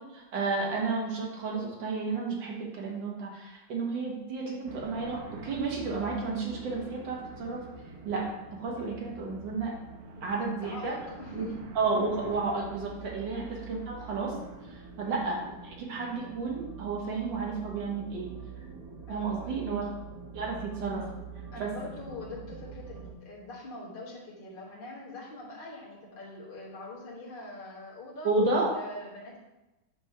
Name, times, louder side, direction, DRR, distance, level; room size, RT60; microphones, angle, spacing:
voice 1, 0.1-7.6 8.1-8.3 8.6-9.7 10.2-10.9 11.3-14.3 14.7-18.3 19.1-19.9 20.3-21.0 21.6-21.7 28.2-28.7, right 3 dB, 90° right, -2 dB, 2.0 m, -32 dB
sound 1, 4.7-23.1, right 5 dB, 60° right, 1.2 m, -45 dB
voice 2, 10.2-11.6 13.3-13.5 15.0-15.2 19.1-19.8 21.5-29.4, left 1 dB, 30° left, -5 dB, 1.3 m, -44 dB
5.4 x 4.5 x 5.5 m, 1.0 s
omnidirectional pair, 1.9 m